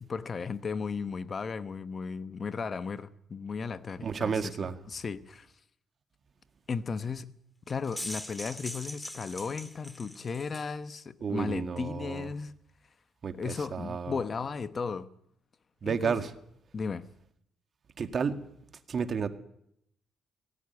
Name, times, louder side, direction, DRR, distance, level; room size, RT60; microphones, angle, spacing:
voice 1, 0.0-5.5 6.7-7.4 7.7-12.5 13.3-15.1 15.8-16.3 16.7-17.1, left 5 dB, 40° left, 0.9 m, -35 dB
voice 2, 4.0-4.7 11.2-12.3 13.2-14.2 15.8-16.3 18.0-18.4 18.9-19.3, right 6 dB, 45° right, 1.8 m, -31 dB
sound 1, 7.7-10.7, left 1 dB, 10° left, 2.2 m, -41 dB
18.5 x 16.5 x 9.6 m
cardioid pair, 90°, 0 cm